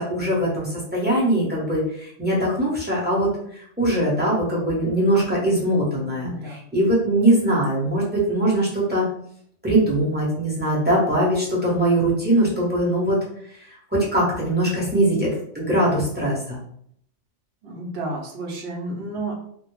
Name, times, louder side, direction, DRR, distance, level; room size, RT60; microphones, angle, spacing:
voice 1, 0.0-6.3 6.7-9.0 9.6-13.2 13.9-15.3 15.5-16.6, right 1 dB, 10° right, -6 dB, 0.6 m, -21 dB
voice 2, 6.2-6.7 17.6-19.3, right 2 dB, 65° right, 0 dB, 0.7 m, -31 dB
2.1 x 2.0 x 3.0 m, 0.67 s
omnidirectional pair, 1.2 m